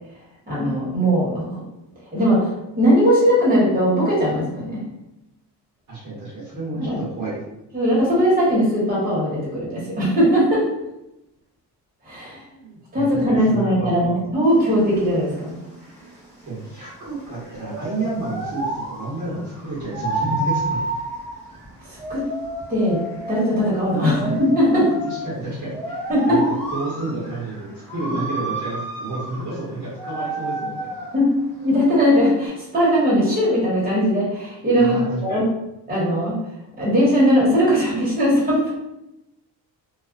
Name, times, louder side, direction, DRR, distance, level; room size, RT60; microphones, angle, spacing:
voice 1, 0.5-1.6 2.1-2.5 2.8-4.8 6.7-7.0 7.7-10.6 12.1-12.4 12.9-15.5 22.1-22.3 22.7-23.0 23.3-24.9 26.1-26.5 31.1-31.3 31.6-35.5 35.9-36.3 36.8-38.7, equal, 20° right, -6 dB, 1.2 m, -19 dB
voice 2, 5.9-7.4 12.5-14.2 16.4-20.8 23.9-26.0 26.3-30.9 34.7-35.4, right 2 dB, 45° right, -7 dB, 1.0 m, -30 dB
sound 1, 14.4-32.5, right 2 dB, 15° left, 1.3 m, -31 dB
2.4 x 2.3 x 2.4 m, 0.89 s
cardioid pair, 90°, 43 cm